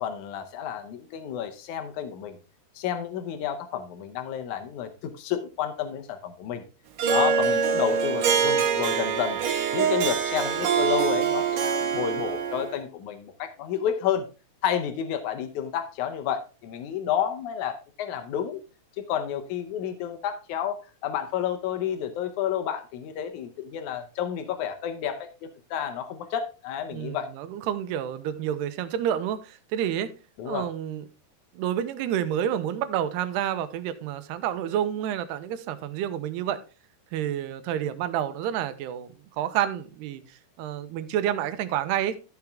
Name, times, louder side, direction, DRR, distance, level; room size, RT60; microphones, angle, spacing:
voice 1, 0.0-2.4 2.7-6.6 7.1-9.4 9.7-14.3 14.6-18.6 19.1-27.3 30.4-30.7, left 9 dB, 85° left, 1.7 m, -30 dB
Harp, 7.0-12.8, right 6 dB, 65° right, 2.4 m, -24 dB
voice 2, 26.9-30.1 30.5-31.0 31.6-36.6 37.1-39.1 39.4-40.2 40.6-42.2, right 10 dB, 90° right, 2.8 m, -29 dB
13.5 x 5.8 x 3.5 m
omnidirectional pair, 4.7 m